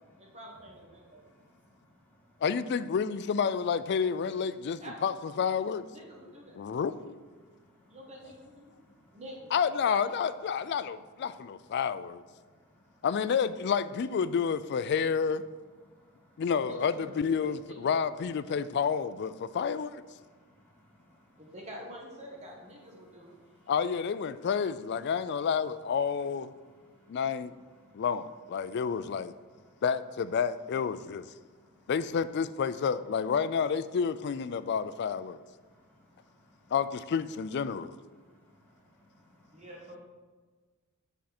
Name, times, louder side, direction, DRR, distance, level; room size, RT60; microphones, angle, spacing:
voice 1, 0.2-1.3 4.8-6.6 7.9-8.8 9.1-9.5 9.9-10.0 16.6-18.0 21.4-23.4 39.5-40.0, equal, 30° right, 1.5 m, -47 dB
voice 2, 1.2-2.3 7.4-8.0 8.8-9.2 12.4-13.1 15.9-16.4 20.2-21.4 23.4-23.7 26.9-27.2 27.8-28.0 29.7-29.8 31.4-31.9 35.6-36.7 38.1-39.6, left 1 dB, 10° left, 2.3 m, -64 dB
voice 3, 2.4-5.8 6.6-7.2 9.5-12.2 13.0-15.4 16.4-20.0 23.7-26.5 27.1-27.5 27.9-29.3 29.8-31.3 31.9-35.4 36.7-38.0, left 6 dB, 50° left, 0.3 m, -30 dB
8.1 x 6.2 x 4.3 m
head